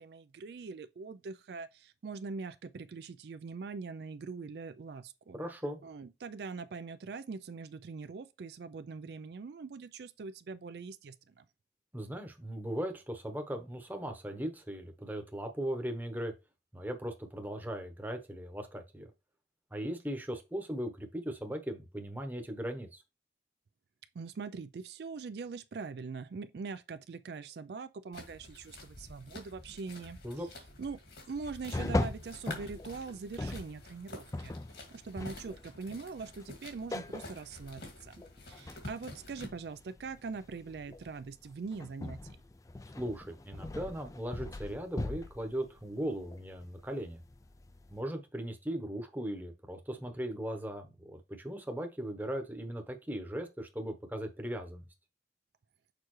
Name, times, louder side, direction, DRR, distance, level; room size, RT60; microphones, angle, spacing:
voice 1, 0.0-5.4 5.8-11.4 24.1-30.2 30.8-31.0 31.3-34.5 34.9-38.2 38.5-42.4, right 4 dB, 65° right, 0.4 m, -42 dB
voice 2, 5.3-5.8 11.9-16.3 16.7-19.1 19.7-23.0 30.2-30.5 43.0-47.2 47.9-54.8, right 1 dB, 10° right, 0.9 m, -38 dB
sound 1, 28.1-39.5, left 2 dB, 65° left, 2.2 m, -49 dB
sound 2, 31.7-48.0, left 2 dB, 20° left, 0.3 m, -41 dB
6.6 x 4.7 x 3.1 m
head